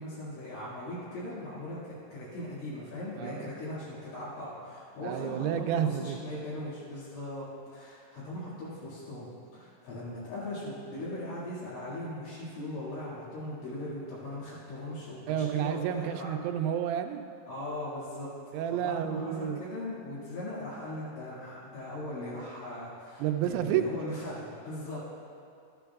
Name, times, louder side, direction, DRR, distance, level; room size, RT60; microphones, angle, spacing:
voice 1, 0.0-9.3 9.5-16.3 17.5-18.3 18.7-25.0, left 1 dB, 70° left, -9 dB, 4.3 m, -39 dB
voice 2, 3.2-3.5 5.0-6.2 9.7-9.8 15.3-17.2 18.5-19.6 23.2-23.9, right 10 dB, 85° right, 7 dB, 2.9 m, -30 dB
13.0 x 11.5 x 2.3 m, 2.5 s
omnidirectional pair, 5.9 m